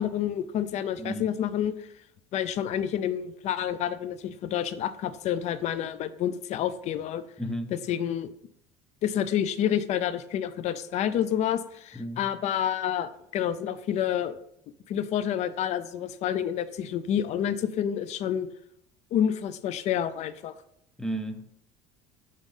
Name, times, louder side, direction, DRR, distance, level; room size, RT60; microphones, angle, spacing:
voice 1, 0.0-1.9 2.3-7.2 7.9-8.3 9.0-14.4 14.9-18.5 19.1-20.5, left 10 dB, 50° left, 0.5 m, -29 dB
voice 2, 7.4-7.7 11.9-12.3 21.0-21.6, right 1 dB, 5° left, 0.7 m, -33 dB
5.4 x 3.7 x 5.3 m
supercardioid pair, 105°, 15 cm